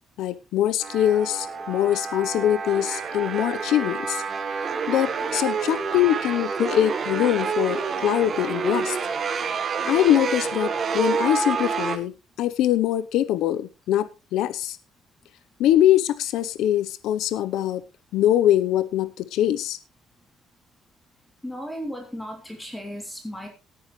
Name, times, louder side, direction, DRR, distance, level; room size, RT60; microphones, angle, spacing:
voice 1, 0.2-4.2 4.9-9.0 9.8-14.8 15.6-17.8 18.1-19.8, left 12 dB, 80° left, 15 dB, 0.8 m, -23 dB
sound 1, 0.8-12.0, right 5 dB, 40° right, 1.5 m, -28 dB
voice 2, 21.4-23.5, equal, 5° left, 2 dB, 3.1 m, -35 dB
17.5 x 9.6 x 3.2 m, 0.28 s
cardioid pair, 140°, 0 cm